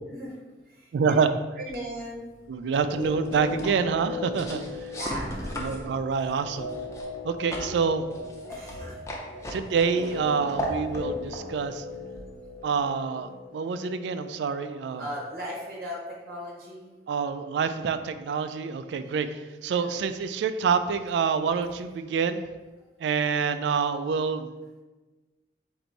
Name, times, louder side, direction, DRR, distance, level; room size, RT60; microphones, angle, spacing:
voice 1, 0.9-1.3 2.5-4.6 5.6-6.7 7.2-8.0 9.5-11.8 12.6-15.0 17.1-19.3 19.6-22.4 23.0-24.5, right 5 dB, 80° right, 10 dB, 0.3 m, -27 dB
voice 2, 1.6-2.3 4.9-5.6 8.5-9.1 15.0-16.9 19.9-20.0, equal, 55° right, -3 dB, 0.7 m, -37 dB
sound 1, 1.7-12.8, equal, 15° left, 0.5 m, -38 dB
sound 2, 2.8-14.9 15.2-15.3, left 3 dB, 65° left, 0.5 m, -38 dB
4.0 x 2.6 x 4.5 m, 1.2 s
head